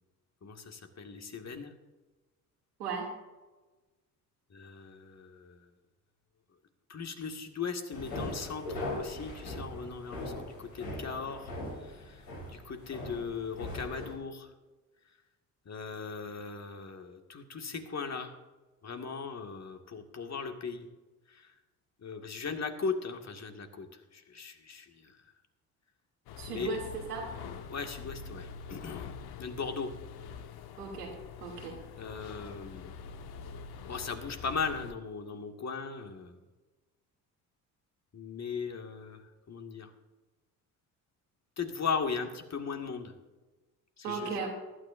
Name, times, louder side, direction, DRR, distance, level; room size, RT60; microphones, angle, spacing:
voice 1, 0.4-1.7 4.5-5.7 6.9-11.5 11.8-12.2 12.5-14.5 15.7-18.4 18.8-20.9 21.3-21.5 22.0-23.9 24.1-25.2 26.5-26.8 27.7-29.0 29.4-29.9 32.0-33.0 33.9-36.4 38.1-39.2 39.5-39.9 41.6-43.1 44.0-44.3, left 5 dB, 35° left, 4 dB, 2.0 m, -38 dB
voice 2, 2.8-3.1 26.4-27.3 30.8-31.1 31.4-31.8 44.0-44.5, right 5 dB, 85° right, 0 dB, 2.8 m, -36 dB
sound 1, 7.9-14.2, left 1 dB, 85° left, 3.4 m, -40 dB
sound 2, 26.3-34.9, left 6 dB, 55° left, 1.2 m, -45 dB
19.5 x 12.0 x 2.6 m, 1.2 s
hypercardioid pair, 55°, 46 cm